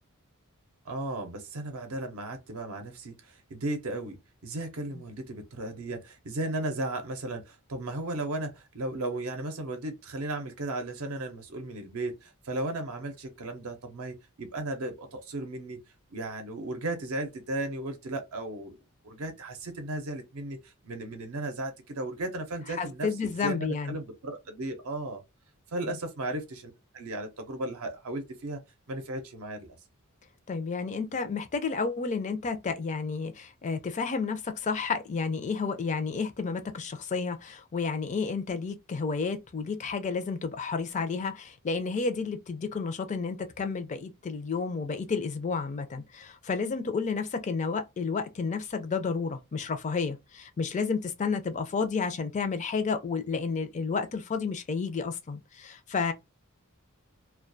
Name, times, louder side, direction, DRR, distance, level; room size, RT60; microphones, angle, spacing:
voice 1, 0.9-4.2 4.4-15.8 16.1-18.8 19.0-25.2 25.7-28.6 28.9-29.7, right 2 dB, 75° right, 0.6 m, -35 dB
voice 2, 22.8-24.0 30.5-56.1, left 5 dB, 35° left, 0.4 m, -31 dB
2.2 x 2.2 x 2.5 m
head